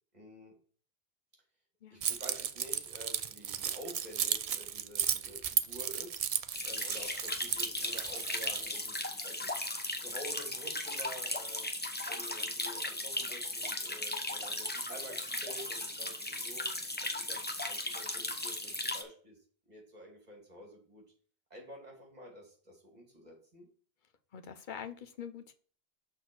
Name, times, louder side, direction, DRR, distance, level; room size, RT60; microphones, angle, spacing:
voice 1, 0.1-0.5 1.9-9.6 10.0-11.7 12.1-16.7 17.0-19.4 19.7-21.0 21.5-23.7, equal, 40° right, 2.5 m, -50 dB
Keys jangling, 2.0-8.8, right 8 dB, 60° right, 0.4 m, -34 dB
sound 1, 6.5-19.0, left 1 dB, 10° left, 0.6 m, -37 dB
voice 2, 24.3-25.5, left 8 dB, 50° left, 0.8 m, -44 dB
6.4 x 4.1 x 6.1 m
omnidirectional pair, 1.1 m